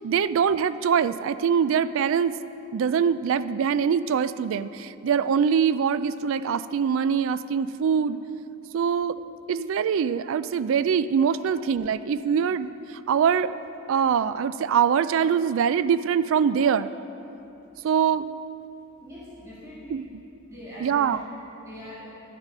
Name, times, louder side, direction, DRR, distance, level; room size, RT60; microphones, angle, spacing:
voice 1, 0.0-2.4 2.7-8.2 8.7-9.2 9.5-13.5 13.9-16.9 17.8-18.3 19.9-20.1 20.8-21.2, right 7 dB, 65° right, 14 dB, 0.3 m, -23 dB
voice 2, 19.0-20.0 20.5-22.1, equal, 15° right, -9 dB, 2.3 m, -42 dB
11.5 x 7.1 x 5.4 m, 2.9 s
head